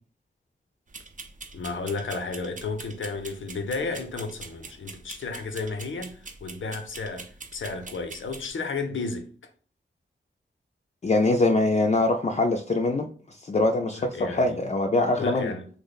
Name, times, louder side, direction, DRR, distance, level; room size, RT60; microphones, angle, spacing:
sound 1, 0.9-8.5, right 3 dB, 40° right, 0.5 m, -44 dB
voice 1, 1.5-9.3 14.0-14.6 15.2-15.7, left 4 dB, 85° left, 0.6 m, -33 dB
voice 2, 11.0-13.1 13.4-15.5, left 2 dB, 35° left, 0.4 m, -23 dB
3.0 x 2.1 x 3.9 m
cardioid pair, 50°, 20 cm